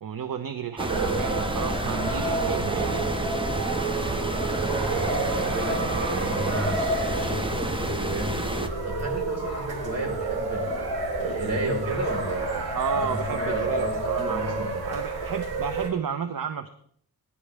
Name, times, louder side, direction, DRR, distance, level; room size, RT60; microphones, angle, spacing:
voice 1, 0.0-3.1 5.4-5.6 12.7-16.7, right 7 dB, 65° right, 9 dB, 0.9 m, -32 dB
sound 1, 0.8-8.7, right 1 dB, 15° right, 0.9 m, -30 dB
voice 2, 0.8-1.2 4.6-14.9, right 1 dB, 40° right, 0 dB, 4.7 m, -34 dB
sound 2, 0.9-15.9, right 3 dB, 85° right, 3.7 m, -29 dB
20.5 x 11.0 x 3.4 m, 0.63 s
wide cardioid pair, 125°, 37 cm